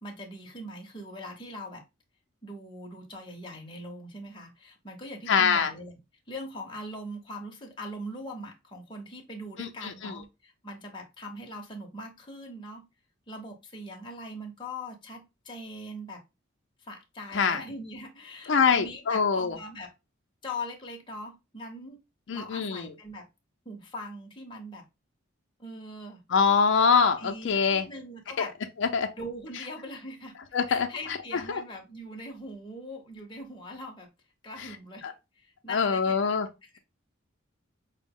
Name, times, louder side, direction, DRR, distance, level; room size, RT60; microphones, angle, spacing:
voice 1, 0.0-1.8 2.4-5.9 6.3-12.8 13.3-16.2 16.8-19.9 20.4-22.0 22.3-23.2 23.6-24.8 25.6-26.2 27.2-28.5 29.2-34.1 34.4-35.1 35.4-36.3 36.6-36.8, left 1 dB, 25° left, 0.7 m, -41 dB
voice 2, 5.3-5.7 9.6-10.1 17.3-17.6 18.5-19.6 22.3-22.9 26.3-27.9 28.8-29.1 30.5-30.9 31.5-31.6 34.6-34.7 35.0-35.1 35.7-36.5, left 6 dB, 60° left, 0.4 m, -24 dB
5.0 x 2.0 x 3.5 m
head